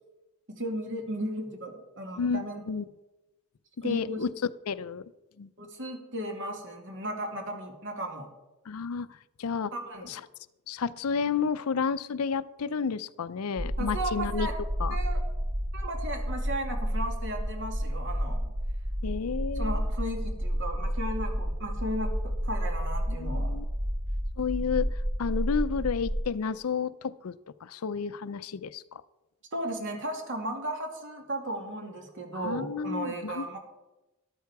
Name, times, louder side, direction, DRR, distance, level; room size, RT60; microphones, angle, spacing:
voice 1, 0.5-2.6 3.8-4.2 5.6-8.3 9.7-10.1 13.8-14.5 14.9-15.2 15.7-18.4 19.5-22.1 22.4-23.5 29.5-33.6, right 1 dB, 60° right, 3 dB, 2.3 m, -35 dB
voice 2, 2.2-2.8 3.8-4.3 4.7-5.0 5.4-5.5 8.7-9.1 9.4-9.7 10.1-10.2 10.7-14.5 14.8-15.0 19.0-19.8 23.1-23.6 24.4-27.3 27.6-29.0 32.3-33.5, left 5 dB, 85° left, 16 dB, 0.5 m, -31 dB
sound 1, 13.6-26.2, equal, 40° right, 1.1 m, -31 dB
13.0 x 12.5 x 4.7 m, 1.0 s
head